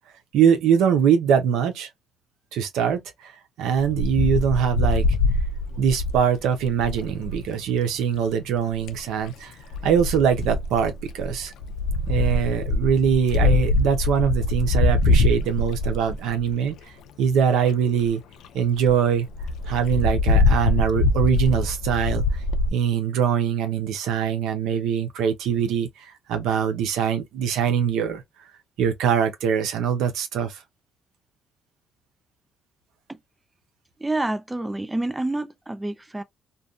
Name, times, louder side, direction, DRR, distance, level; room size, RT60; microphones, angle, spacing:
voice 1, 0.3-1.9 2.5-3.3 3.6-5.0 5.8-9.5 9.8-11.5 12.1-16.8 17.2-18.2 18.5-19.3 19.7-22.2 22.7-25.9 26.3-28.2 28.8-30.6, right 7 dB, 90° right, 0.6 m, -22 dB
Wind, 3.8-7.4 8.5-9.0 9.7-16.7 17.3-17.4 17.6-17.7 18.1-18.2 18.4-18.5 18.8-18.9 19.4-22.7, left 2 dB, 85° left, 0.4 m, -23 dB
voice 2, 34.0-36.2, right 2 dB, 10° right, 0.4 m, -28 dB
2.5 x 2.2 x 2.4 m
cardioid pair, 90°, 0 cm